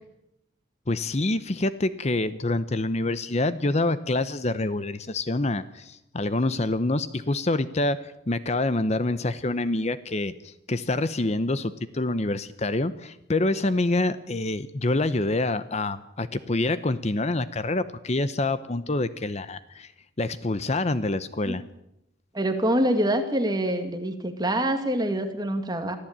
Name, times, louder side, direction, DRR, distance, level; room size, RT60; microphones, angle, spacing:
voice 1, 0.9-19.9 20.2-21.6, left 2 dB, 35° left, 14 dB, 0.7 m, -26 dB
voice 2, 22.3-26.0, right 1 dB, 20° right, 6 dB, 2.1 m, -25 dB
24.5 x 15.0 x 8.8 m, 0.84 s
head